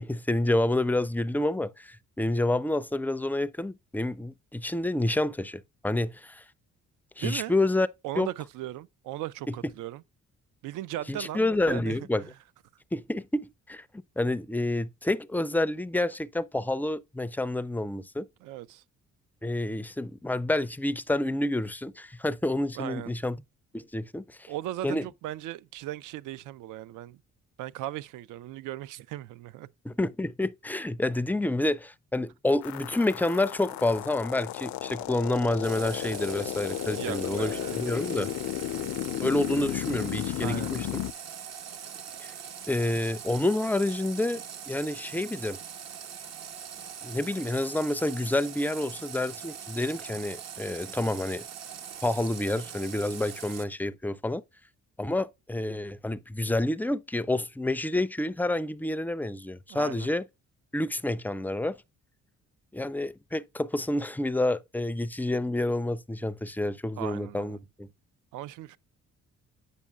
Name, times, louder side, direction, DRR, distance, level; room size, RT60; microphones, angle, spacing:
voice 1, 0.0-6.4 7.2-7.9 8.2-8.3 9.5-9.6 11.1-12.2 12.9-18.3 19.4-23.4 23.7-24.5 24.8-25.0 29.8-38.3 39.2-41.0 42.2-42.3 42.7-45.6 47.0-51.4 52.0-54.4 55.0-60.2 60.7-61.8 62.7-67.9, left 1 dB, 5° left, 0.3 m, -29 dB
voice 2, 7.2-7.5 8.0-10.0 10.6-12.0 18.4-18.8 22.8-23.1 24.5-27.2 27.6-29.7 36.9-37.8 40.4-40.7 59.7-60.1 67.0-67.6 68.3-68.8, right 14 dB, 85° right, 0.5 m, -37 dB
sound 1, 32.6-41.1, left 15 dB, 70° left, 0.4 m, -34 dB
Water tap faucet, 35.6-53.6, right 8 dB, 60° right, 0.9 m, -42 dB
8.4 x 5.3 x 2.3 m
cardioid pair, 90°, 30 cm